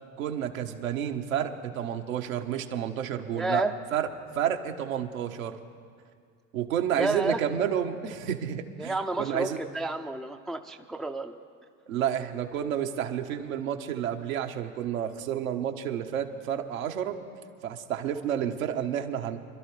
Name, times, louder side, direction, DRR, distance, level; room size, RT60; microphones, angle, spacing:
voice 1, 0.2-3.6 3.9-4.1 4.3-5.6 6.5-9.6 11.9-17.2 17.6-19.4, right 9 dB, 75° right, 4 dB, 1.3 m, -30 dB
voice 2, 3.3-3.7 6.9-7.4 8.8-11.4, right 2 dB, ahead, 5 dB, 0.5 m, -30 dB
26.0 x 12.0 x 3.3 m, 2.1 s
hypercardioid pair, 85°, 41 cm